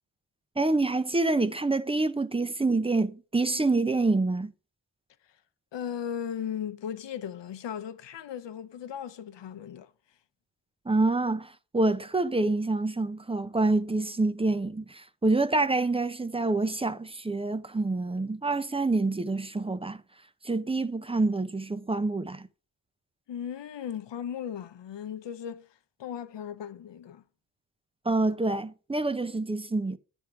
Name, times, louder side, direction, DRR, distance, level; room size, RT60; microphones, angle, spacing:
voice 1, 0.6-4.5 10.9-20.0 20.4-22.5 28.1-30.0, right 2 dB, 15° right, 0.4 m, -27 dB
voice 2, 5.7-9.9 23.3-25.7 26.0-27.2, left 8 dB, 85° left, 0.7 m, -37 dB
9.7 x 3.6 x 5.5 m
wide cardioid pair, 140°, 42 cm